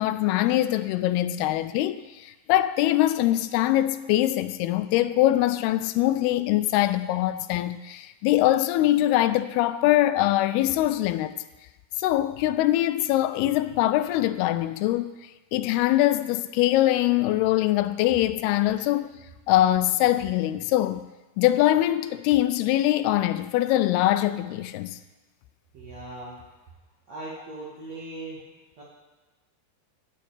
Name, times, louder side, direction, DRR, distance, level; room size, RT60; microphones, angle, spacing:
voice 1, 0.0-11.4 12.0-15.2 15.5-19.1 19.5-21.1 21.4-25.0, left 14 dB, 80° left, 2.4 m, -23 dB
voice 2, 25.7-26.4 27.1-28.4 28.8-28.9, right 2 dB, 50° right, 2.4 m, -39 dB
14.5 x 8.2 x 4.7 m
omnidirectional pair, 4.8 m